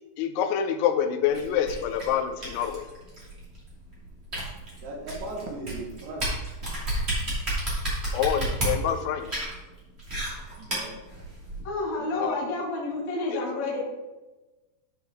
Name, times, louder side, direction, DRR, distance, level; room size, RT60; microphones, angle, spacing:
voice 1, 0.2-2.9 8.1-9.4 12.2-12.4, left 9 dB, 80° left, 6 dB, 3.0 m, -26 dB
sound 1, 1.3-11.6, right 1 dB, 20° right, 1.7 m, -32 dB
voice 2, 4.8-6.3 10.6-11.0 12.0-12.5, right 2 dB, 75° right, 0 dB, 3.5 m, -38 dB
voice 3, 11.6-13.8, left 2 dB, 50° left, -4 dB, 1.4 m, -30 dB
12.0 x 5.1 x 3.5 m, 1.1 s
omnidirectional pair, 5.4 m